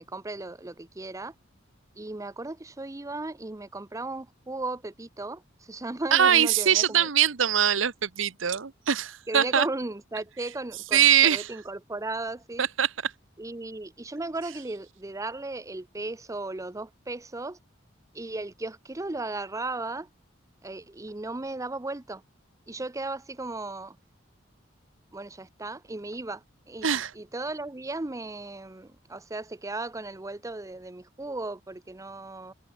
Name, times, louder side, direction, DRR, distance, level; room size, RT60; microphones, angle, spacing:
voice 1, 0.0-1.3 2.0-5.4 5.7-7.1 9.3-12.7 13.4-17.6 18.1-20.1 20.6-22.2 22.7-24.0 25.1-32.5, right 2 dB, 15° right, 0.7 m, -36 dB
voice 2, 6.1-9.7 10.9-11.6 12.6-13.1 26.8-27.1, right 9 dB, 80° right, 1.0 m, -22 dB
head